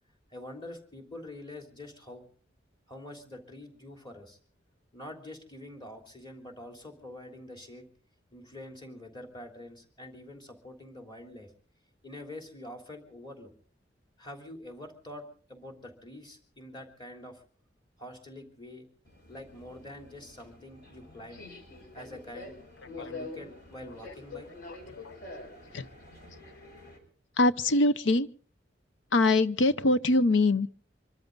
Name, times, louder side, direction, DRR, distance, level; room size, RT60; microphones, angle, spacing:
voice 1, 0.3-2.3 2.9-4.4 4.9-7.9 8.3-11.5 12.0-13.5 14.2-17.4 18.0-18.9 19.3-21.4 21.9-22.5 23.0-24.5, left 1 dB, 25° left, 3.4 m, -45 dB
Subway metro underground, 19.1-27.0, left 3 dB, 60° left, 6.2 m, -46 dB
voice 2, 27.4-28.3 29.1-30.7, left 2 dB, 85° left, 0.8 m, -24 dB
25.5 x 13.5 x 3.9 m
head